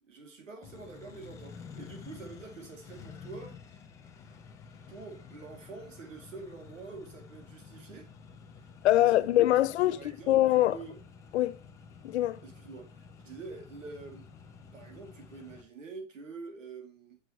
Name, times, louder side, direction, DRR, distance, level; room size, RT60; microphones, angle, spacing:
voice 1, 0.0-3.8 4.9-8.1 8.9-9.1 9.9-11.0 12.4-14.3 14.7-17.2, right 4 dB, 85° right, 2.4 m, -46 dB
Accelerating revving vroom, 0.6-15.6, left 6 dB, 10° left, 0.3 m, -50 dB
voice 2, 8.8-10.8 11.3-11.6 12.0-12.4, left 14 dB, 60° left, 0.6 m, -24 dB
7.8 x 6.3 x 3.0 m
hypercardioid pair, 130°, 37 cm